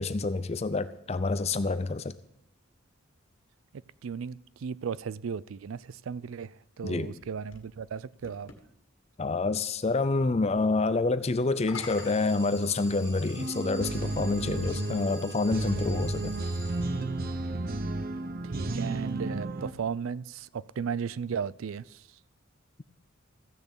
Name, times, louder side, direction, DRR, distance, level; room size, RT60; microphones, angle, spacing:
voice 1, 0.0-2.1 6.8-7.1 9.2-16.3, left 3 dB, 30° left, 0.5 m, -28 dB
voice 2, 3.7-8.5 18.4-22.2, right 6 dB, 75° right, 0.4 m, -36 dB
sound 1, 6.8-8.7 11.5-13.3 14.2-14.3 18.0-19.6, left 5 dB, 70° left, 1.8 m, -47 dB
Alarm, 11.8-17.3, equal, 20° right, 3.6 m, -47 dB
sound 2, 13.4-19.7, right 2 dB, 45° right, 0.8 m, -33 dB
14.5 x 6.8 x 8.2 m
head